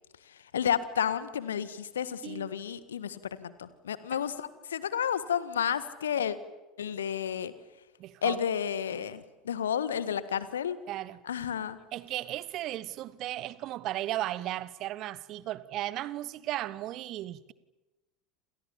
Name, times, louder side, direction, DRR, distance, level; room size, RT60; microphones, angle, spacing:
voice 1, 0.2-6.4 6.8-7.5 8.2-10.8 11.2-11.8, left 8 dB, 70° left, 1.7 m, -31 dB
voice 2, 8.0-8.4 10.9-11.2 11.9-17.5, right 14 dB, 45° right, 1.2 m, -35 dB
29.0 x 27.0 x 7.3 m
figure-of-eight pair, 75°, 0 cm